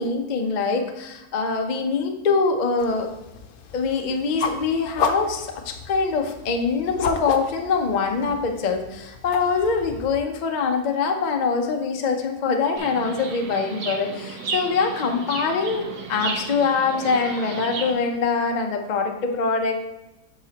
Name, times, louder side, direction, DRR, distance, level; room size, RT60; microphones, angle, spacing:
voice 1, 0.0-3.1 3.7-19.8, left 4 dB, 85° left, 4 dB, 0.4 m, -24 dB
sound 1, 2.8-10.2, left 5 dB, 70° left, 1.0 m, -33 dB
Chirp tweet, 12.8-17.9, right 4 dB, 55° right, 1.4 m, -33 dB
7.9 x 5.0 x 2.8 m, 0.95 s
omnidirectional pair, 1.8 m